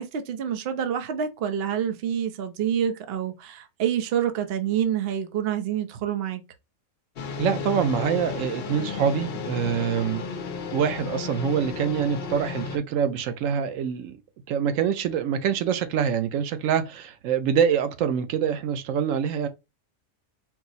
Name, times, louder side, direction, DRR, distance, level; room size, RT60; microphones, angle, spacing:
voice 1, 0.0-6.4, right 9 dB, 60° right, 0.8 m, -27 dB
sound 1, 7.2-12.8, left 5 dB, 60° left, 0.8 m, -33 dB
voice 2, 7.4-10.2 10.7-14.2 14.5-19.5, right 7 dB, 85° right, 1.0 m, -25 dB
4.5 x 2.0 x 3.9 m
omnidirectional pair, 1.3 m